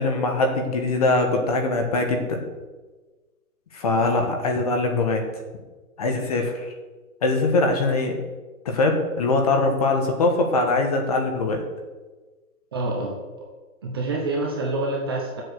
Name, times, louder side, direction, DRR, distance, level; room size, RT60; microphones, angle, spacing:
voice 1, 0.0-2.4 3.7-5.2 6.0-6.7 7.2-8.2 8.6-11.6, left 2 dB, 25° left, 3 dB, 1.4 m, -22 dB
voice 2, 12.7-13.2 13.8-15.4, right 2 dB, 15° right, -2 dB, 0.9 m, -27 dB
11.5 x 8.1 x 6.6 m, 1.3 s
hypercardioid pair, 180°, 42 cm